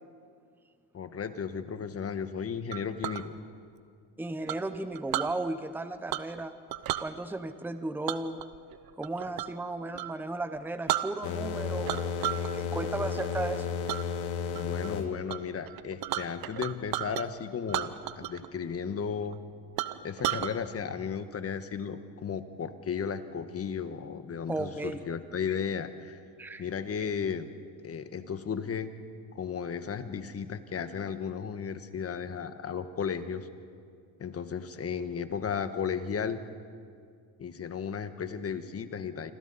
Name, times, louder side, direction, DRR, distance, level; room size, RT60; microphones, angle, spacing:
voice 1, 0.9-3.3 14.5-19.4 20.0-26.2 26.6-27.5 27.8-28.9 29.3-33.5 34.2-36.4 37.4-39.3, left 6 dB, 35° left, 10 dB, 1.4 m, -34 dB
Chink clink, 2.7-3.2 4.5-5.3 6.1-6.4 6.7-7.1 8.1-9.6 9.9-10.1 10.6-10.7 10.9-11.5 11.9-12.5 12.9-13.2 13.9-14.0 14.5-14.9 15.3-15.4 15.6-17.3 17.7-18.5 18.7-18.8 19.3-19.4 19.8-20.5, right 14 dB, 60° right, 1.0 m, -33 dB
voice 2, 4.2-6.5 7.0-8.4 9.0-13.7 24.5-25.0 26.4-26.6, right 2 dB, 5° right, 10 dB, 0.9 m, -35 dB
sound 1, 11.2-15.1, left 6 dB, 85° left, 2.0 m, -33 dB
27.0 x 25.5 x 4.2 m, 2.2 s
cardioid pair, 110°, 42 cm